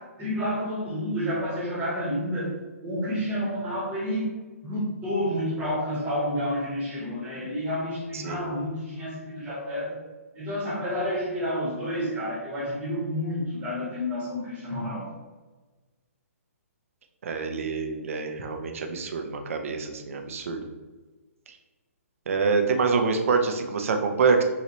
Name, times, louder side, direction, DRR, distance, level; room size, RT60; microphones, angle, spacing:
voice 1, 0.0-2.5 2.8-4.3 4.6-10.0 10.3-15.1, equal, 20° right, -6 dB, 1.2 m, -30 dB
voice 2, 8.1-8.5 17.2-20.6 21.5-21.6 22.3-24.4, right 4 dB, 65° right, 4 dB, 0.6 m, -26 dB
4.1 x 2.4 x 3.0 m, 1.3 s
hypercardioid pair, 140°, 8 cm